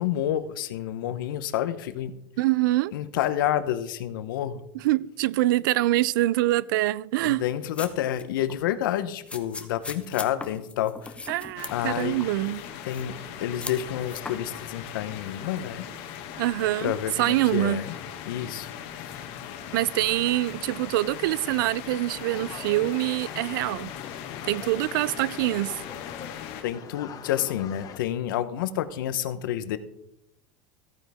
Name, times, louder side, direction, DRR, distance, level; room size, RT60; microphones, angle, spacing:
voice 1, 0.0-2.1 2.9-4.6 7.2-11.2 11.7-12.3 12.9-15.8 16.8-18.0 18.3-18.7 19.0-19.2 26.6-29.8, left 11 dB, 90° left, 0.8 m, -29 dB
voice 2, 2.4-2.9 4.8-7.4 11.3-12.6 16.4-17.8 19.7-23.9 24.5-25.8, right 16 dB, 85° right, 0.4 m, -25 dB
sound 1, 7.5-8.2 8.5-8.6 9.3-12.3 12.5-13.2 13.6-14.3, left 3 dB, 10° left, 0.8 m, -39 dB
sound 2, 11.6-26.6, left 9 dB, 60° left, 1.5 m, -39 dB
sound 3, 22.1-28.0, left 8 dB, 35° left, 1.0 m, -43 dB
14.5 x 9.1 x 3.5 m
supercardioid pair, 135°, 11 cm